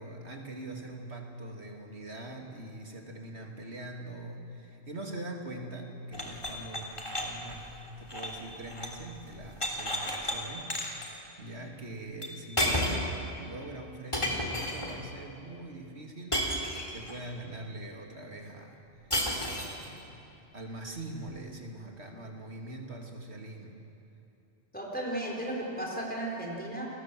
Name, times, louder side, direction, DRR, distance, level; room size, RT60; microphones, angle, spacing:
voice 1, 0.0-7.7 8.0-23.8, right 1 dB, 70° right, 2 dB, 3.0 m, -43 dB
sound 1, 6.1-9.0 9.3-10.4 10.7-11.1 12.2-12.3 12.6-13.1 14.1-15.0 16.3-17.1 19.1-19.9, left 1 dB, 25° left, 3.4 m, -32 dB
voice 2, 24.7-26.9, right 1 dB, 10° left, -2 dB, 4.4 m, -35 dB
29.5 x 21.5 x 7.7 m, 2.9 s
omnidirectional pair, 1.1 m